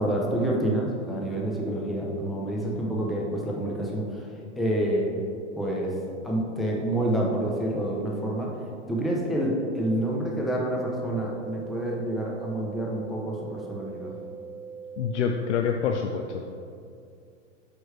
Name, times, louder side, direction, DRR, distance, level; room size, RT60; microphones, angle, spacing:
voice 1, 0.0-4.3 4.6-5.1 5.6-5.9 6.2-8.5 8.9-14.2, right 1 dB, ahead, -3 dB, 0.6 m, -28 dB
sound 1, 9.8-15.8, right 6 dB, 75° right, 0.6 m, -42 dB
voice 2, 15.0-16.6, left 6 dB, 70° left, 4 dB, 0.5 m, -27 dB
6.1 x 4.9 x 3.3 m, 2.4 s
hypercardioid pair, 115°, 37 cm